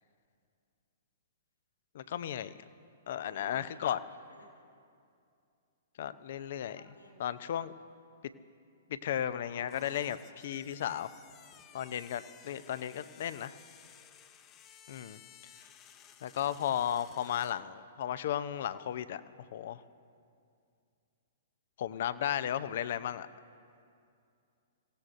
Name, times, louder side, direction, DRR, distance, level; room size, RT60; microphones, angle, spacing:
voice 1, 1.9-2.5 3.1-4.0 6.0-6.8 7.2-7.7 8.9-10.2 10.4-11.1 11.7-13.6 14.9-15.2 16.2-19.2 19.5-19.8 21.8-23.3, left 10 dB, 55° left, 14 dB, 0.6 m, -34 dB
voice 2, 3.1-3.8 4.0-4.7 6.7-7.3 9.4-10.7 11.1-11.7, left 1 dB, 85° left, -3 dB, 4.8 m, -57 dB
sound 1, 9.6-17.6, left 9 dB, 30° left, 0.8 m, -57 dB
25.5 x 17.0 x 2.6 m, 2.4 s
figure-of-eight pair, 110°, 0 cm